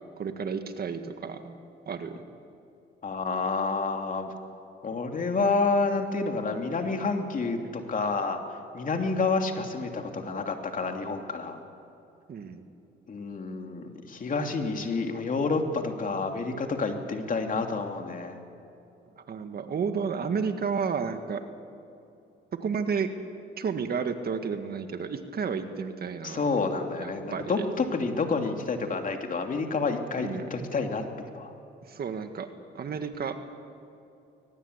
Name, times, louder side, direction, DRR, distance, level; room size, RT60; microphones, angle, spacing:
voice 1, 0.2-1.6 1.9-2.2 12.3-12.6 19.3-21.4 22.6-23.1 23.6-26.5 27.0-27.6 30.2-30.5 31.9-32.5 32.8-33.4, right 6 dB, 50° right, 8 dB, 1.8 m, -31 dB
voice 2, 3.0-4.3 4.8-8.4 8.7-11.6 13.1-18.4 26.2-31.5, left 4 dB, 45° left, 4 dB, 2.9 m, -29 dB
22.0 x 20.0 x 8.2 m, 2.8 s
cardioid pair, 90°, 20 cm